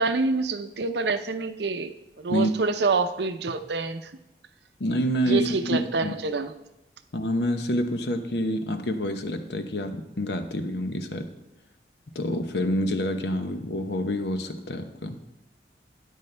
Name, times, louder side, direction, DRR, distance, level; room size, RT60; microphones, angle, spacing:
voice 1, 0.0-4.1 5.3-6.5, right 3 dB, 75° right, 10 dB, 0.6 m, -27 dB
voice 2, 4.8-6.2 7.1-11.3 12.1-15.2, equal, 75° left, 7 dB, 0.9 m, -27 dB
12.5 x 10.0 x 3.3 m, 0.94 s
head